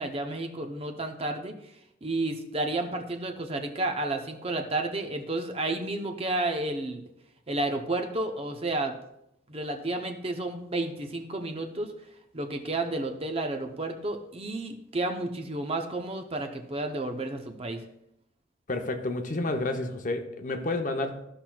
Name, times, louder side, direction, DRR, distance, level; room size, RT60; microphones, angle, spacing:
voice 1, 0.0-1.7 2.0-7.0 7.5-9.0 9.5-11.9 12.3-17.8, right 2 dB, 30° right, 5 dB, 0.7 m, -31 dB
voice 2, 18.7-21.3, left 2 dB, 40° left, 5 dB, 0.8 m, -30 dB
14.0 x 5.8 x 2.3 m, 0.81 s
head